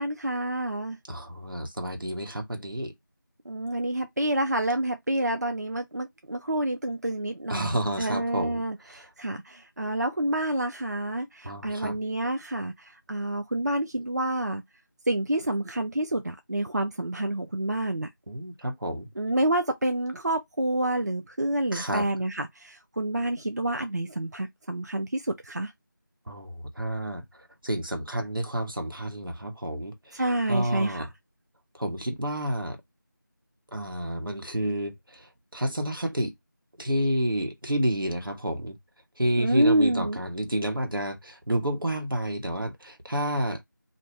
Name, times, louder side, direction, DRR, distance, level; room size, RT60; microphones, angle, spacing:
voice 1, 0.0-1.0 3.5-14.6 15.1-18.1 19.2-25.7 30.1-31.1 39.4-40.2, right 1 dB, 55° right, 0.5 m, -28 dB
voice 2, 1.1-2.9 7.5-8.6 8.9-9.1 11.4-12.0 18.3-19.1 21.7-22.1 26.3-27.2 27.6-30.2 30.5-31.1 31.8-32.8 33.7-35.3 35.5-36.3 36.8-38.8 39.2-43.6, right 1 dB, 85° right, 1.4 m, -30 dB
2.7 x 2.6 x 3.2 m
figure-of-eight pair, 180°, 11 cm